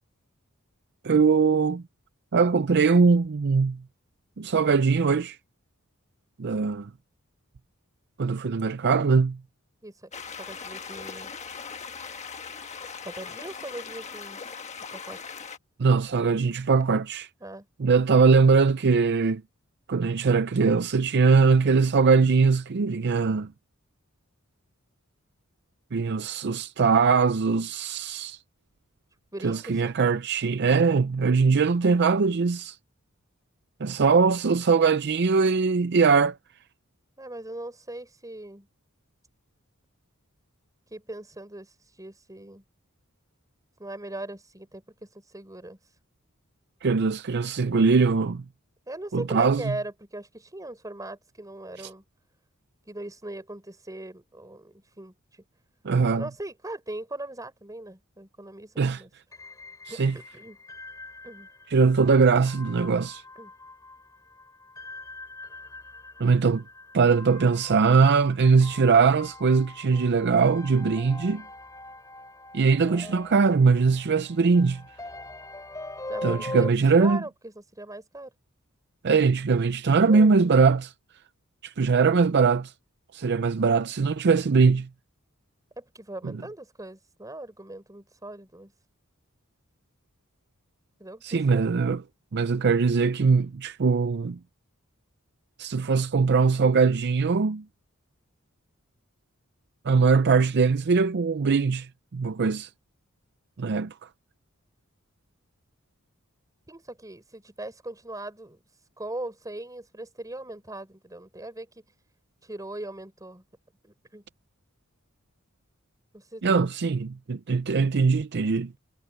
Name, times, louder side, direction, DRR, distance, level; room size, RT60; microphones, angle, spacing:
voice 1, 1.0-1.8 2.3-3.8 4.4-5.4 6.4-6.9 8.2-9.4 15.8-17.3 17.8-19.4 19.9-23.5 25.9-28.4 29.4-32.8 33.8-36.4 46.8-48.4 49.1-49.6 55.8-56.2 58.8-59.0 59.9-60.1 61.7-63.2 66.2-66.6 66.9-71.4 72.5-74.8 76.2-77.2 79.0-80.9 81.6-82.7 83.1-84.9 91.2-92.0 92.3-94.4 95.6-97.6 99.8-102.7 103.6-104.1 116.4-118.7, right 5 dB, 55° right, 0.5 m, -21 dB
voice 2, 9.8-11.3 13.0-14.4 14.9-15.4 17.4-17.7 29.3-30.0 37.2-38.7 40.9-42.6 43.8-45.8 48.9-52.0 52.9-55.4 56.1-59.1 59.9-60.6 61.2-61.5 63.4-63.5 73.0-73.2 76.1-78.3 80.1-80.4 85.8-88.7 91.0-91.6 106.7-108.6 109.0-111.8 112.4-113.4 113.8-114.2 116.1-116.7, right 1 dB, 15° right, 4.5 m, -40 dB
sound 1, 10.1-15.6, left 5 dB, 35° left, 1.3 m, -39 dB
sound 2, 59.3-76.7, left 2 dB, 15° left, 4.0 m, -42 dB
head